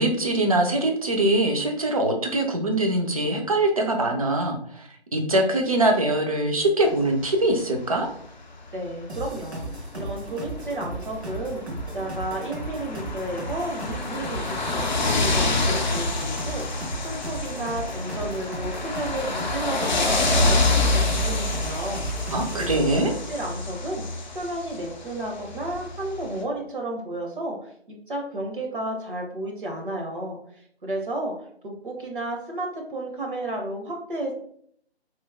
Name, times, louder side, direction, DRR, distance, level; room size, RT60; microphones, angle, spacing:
voice 1, 0.0-8.1 22.3-23.1, right 1 dB, 35° right, 3 dB, 0.5 m, -23 dB
sound 1, 7.2-7.5 8.6-8.7 8.9-9.0 9.4-9.5 9.7-9.9 10.5-26.4, left 2 dB, 45° left, 0.5 m, -27 dB
voice 2, 8.7-22.3 22.6-24.0 24.3-31.3 31.6-34.3, right 1 dB, 50° right, 0 dB, 0.8 m, -32 dB
sound 2, 9.1-22.8, right 2 dB, 75° right, 1.2 m, -36 dB
3.0 x 2.7 x 3.5 m, 0.64 s
figure-of-eight pair, 145°, 32 cm